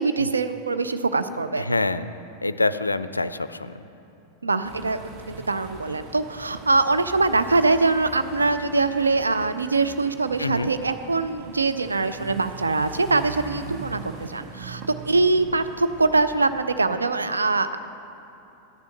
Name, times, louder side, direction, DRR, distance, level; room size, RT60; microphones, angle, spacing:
voice 1, 0.0-1.7 4.4-5.0 5.3-17.8, right 3 dB, 80° right, 10 dB, 0.4 m, -23 dB
voice 2, 1.6-2.1 2.4-3.7 10.4-10.7, left 2 dB, 80° left, 14 dB, 0.3 m, -25 dB
sound 1, 4.6-17.1, right 5 dB, 35° right, 0.9 m, -42 dB
10.5 x 6.9 x 6.6 m, 2.9 s
figure-of-eight pair, 90°, 0 cm